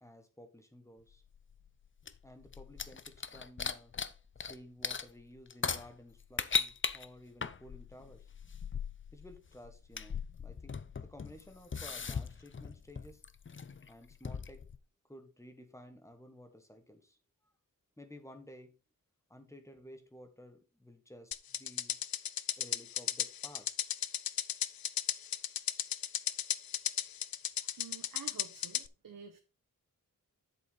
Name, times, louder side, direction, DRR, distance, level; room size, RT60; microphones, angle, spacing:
voice 1, 0.0-1.2 2.2-3.9 4.4-8.3 9.1-13.2 13.9-14.6 15.1-17.2 18.0-18.7 19.3-22.0 22.6-23.9, left 1 dB, 10° left, 7 dB, 1.5 m, -54 dB
sound 1, 1.1-4.6 4.8-14.8, left 6 dB, 35° left, 0.6 m, -39 dB
sound 2, 21.3-28.9, left 10 dB, 80° left, 0.6 m, -34 dB
voice 2, 27.6-29.4, right 6 dB, 70° right, 5 dB, 1.1 m, -50 dB
8.0 x 6.9 x 4.0 m, 0.31 s
wide cardioid pair, 120°, 35 cm